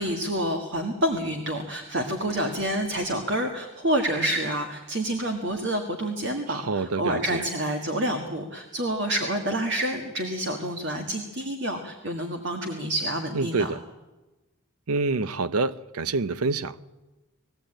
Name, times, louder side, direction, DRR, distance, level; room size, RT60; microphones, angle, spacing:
voice 1, 0.0-13.7, right 1 dB, 50° right, 1.7 m, -28 dB
voice 2, 6.5-7.4 13.3-13.8 14.9-16.8, right 3 dB, 85° right, 0.7 m, -27 dB
21.5 x 15.5 x 8.9 m
head